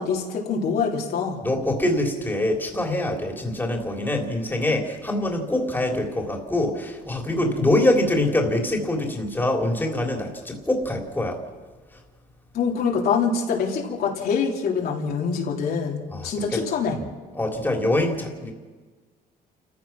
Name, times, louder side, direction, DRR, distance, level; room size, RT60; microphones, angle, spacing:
voice 1, 0.0-1.4 12.5-17.0, left 5 dB, 65° left, -1 dB, 3.3 m, -25 dB
voice 2, 1.4-11.4 16.1-16.6 17.0-17.1 17.4-18.5, left 1 dB, 10° left, 1 dB, 3.4 m, -24 dB
29.0 x 15.0 x 6.0 m, 1.4 s
cardioid pair, 110°, 17 cm